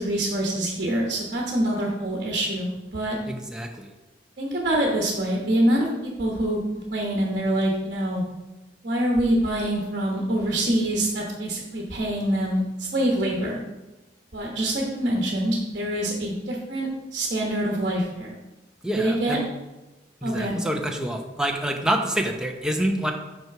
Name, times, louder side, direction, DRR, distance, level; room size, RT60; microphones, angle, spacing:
voice 1, 0.0-3.1 4.4-8.2 8.8-13.6 14.3-18.3 18.9-19.4 20.2-20.6, right 1 dB, 50° right, -2 dB, 1.2 m, -25 dB
voice 2, 3.3-3.9 18.8-19.4 20.2-23.1, right 1 dB, 5° right, 2 dB, 0.7 m, -27 dB
6.1 x 4.5 x 6.0 m, 1.1 s
head